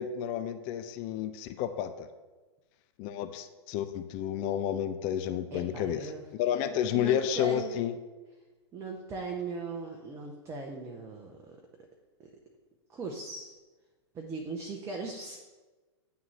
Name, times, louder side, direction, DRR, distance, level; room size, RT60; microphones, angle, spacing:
voice 1, 0.0-2.1 3.0-6.1 6.4-7.9, left 10 dB, 35° left, 10 dB, 0.4 m, -31 dB
voice 2, 5.5-6.2 6.9-7.7 8.7-11.6 12.2-12.3 12.9-13.5 14.1-15.4, right 4 dB, 20° right, 2 dB, 0.6 m, -39 dB
9.1 x 3.7 x 3.1 m, 1.2 s
figure-of-eight pair, 105°, 15 cm